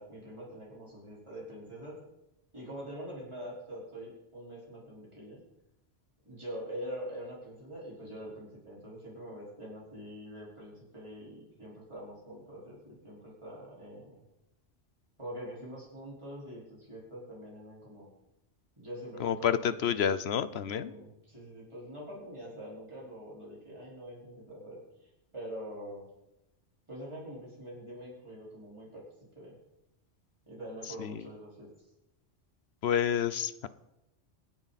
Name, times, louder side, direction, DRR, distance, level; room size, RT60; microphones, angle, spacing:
voice 1, 0.0-2.0 2.5-5.4 6.2-14.2 15.2-18.1 18.8-20.0 20.5-26.1 26.9-29.0 29.4-29.6 30.5-31.7, equal, 25° right, -6 dB, 4.7 m, -44 dB
voice 2, 19.2-20.9 31.0-31.1 32.8-33.7, left 8 dB, 65° left, 14 dB, 0.9 m, -29 dB
25.0 x 9.1 x 4.2 m, 0.91 s
omnidirectional pair, 1.2 m